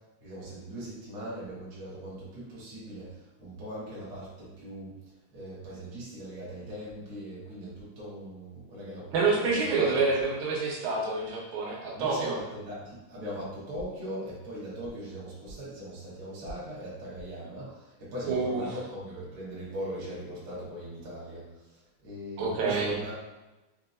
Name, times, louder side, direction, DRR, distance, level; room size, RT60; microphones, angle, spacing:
voice 1, 0.2-5.0 5.3-10.0 11.9-23.1, equal, 50° right, -7 dB, 1.1 m, -40 dB
voice 2, 9.1-12.3 18.3-18.8 22.4-23.0, right 4 dB, 85° right, -3 dB, 2.2 m, -27 dB
5.0 x 2.8 x 2.5 m, 1.1 s
omnidirectional pair, 3.4 m